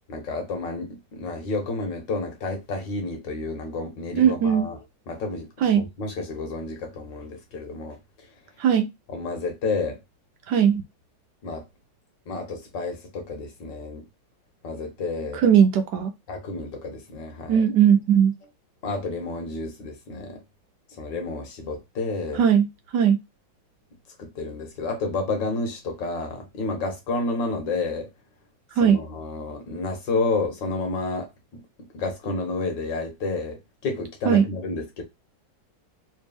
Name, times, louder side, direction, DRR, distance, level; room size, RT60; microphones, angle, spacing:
voice 1, 0.1-4.8 5.1-8.0 9.1-10.0 11.4-11.6 12.3-14.0 14.6-15.4 16.3-17.6 18.8-20.4 21.0-22.4 24.2-28.1 28.8-35.0, left 3 dB, 70° left, 1.8 m, -30 dB
voice 2, 4.1-4.7 5.6-5.9 8.6-8.9 10.5-10.8 15.3-16.1 17.5-18.3 22.3-22.7 22.9-23.2 28.8-29.0 34.3-34.5, right 8 dB, 70° right, 1.1 m, -18 dB
3.4 x 3.2 x 3.4 m
omnidirectional pair, 2.1 m